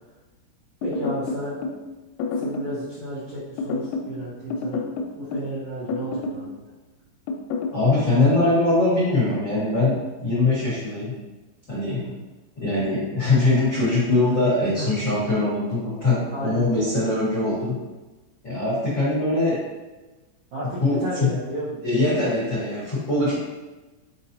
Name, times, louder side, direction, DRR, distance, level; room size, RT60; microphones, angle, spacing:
sound 1, 0.8-1.8 2.2-2.8 3.6-4.1 4.5-5.5 5.9-6.5 7.3-7.8, left 3 dB, 90° left, 3.1 m, -29 dB
voice 1, 0.8-1.6 2.4-4.8 5.1-6.6 12.0-12.1 14.7-14.9 16.3-16.6 20.5-21.8, right 1 dB, 70° right, -11 dB, 2.0 m, -32 dB
voice 2, 7.7-11.1 11.7-12.0 12.6-17.8 18.4-19.6 20.8-21.3 21.8-23.3, left 2 dB, 75° left, -10 dB, 1.0 m, -22 dB
7.3 x 4.6 x 2.8 m, 1.2 s
omnidirectional pair, 5.5 m